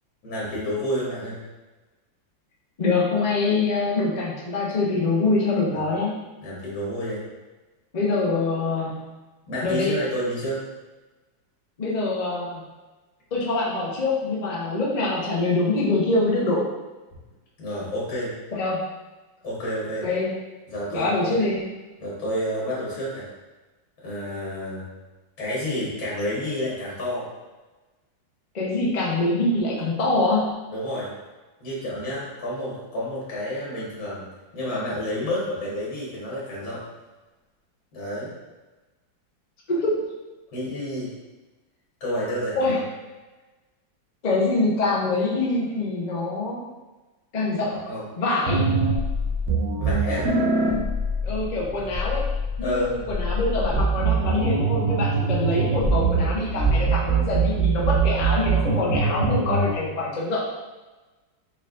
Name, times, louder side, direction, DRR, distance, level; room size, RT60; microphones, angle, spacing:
voice 1, 0.2-1.4 5.7-5.8 6.4-7.2 9.5-10.6 17.6-18.3 19.4-20.1 20.7-21.3 22.0-23.3 24.0-24.9 25.4-27.3 30.7-31.1 31.6-34.3 34.5-36.8 37.9-38.3 40.5-41.1 42.0-42.8 47.9-48.0 49.8-50.3 52.6-52.9, equal, 70° left, -7 dB, 2.2 m, -29 dB
voice 2, 2.8-6.2 7.9-9.0 9.6-10.0 11.8-12.6 13.3-16.7 18.5-18.8 20.0-20.3 20.9-21.7 28.5-30.6 39.7-40.0 42.6-42.8 44.2-46.6 47.3-47.8 48.2-48.7 51.2-52.2 52.6-60.4, left 2 dB, 55° left, -5 dB, 0.4 m, -24 dB
sound 1, 48.5-59.7, right 3 dB, 50° right, 0.8 m, -23 dB
4.8 x 4.5 x 2.4 m, 1.2 s
omnidirectional pair, 2.1 m